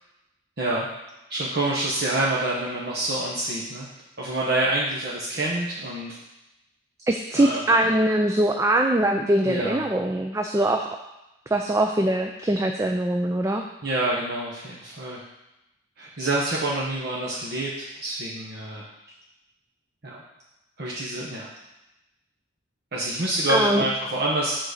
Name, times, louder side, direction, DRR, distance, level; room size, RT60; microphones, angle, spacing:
voice 1, 0.6-0.9 1.3-3.9 4.2-6.2 7.3-7.9 9.4-9.8 13.8-15.2 16.0-18.9 20.0-20.2 20.8-21.5 22.9-24.5, right 1 dB, 50° right, -5 dB, 1.0 m, -27 dB
voice 2, 7.1-10.9 11.5-13.6 23.5-23.8, right 1 dB, 15° right, 4 dB, 0.3 m, -22 dB
7.5 x 3.9 x 6.5 m, 0.96 s
head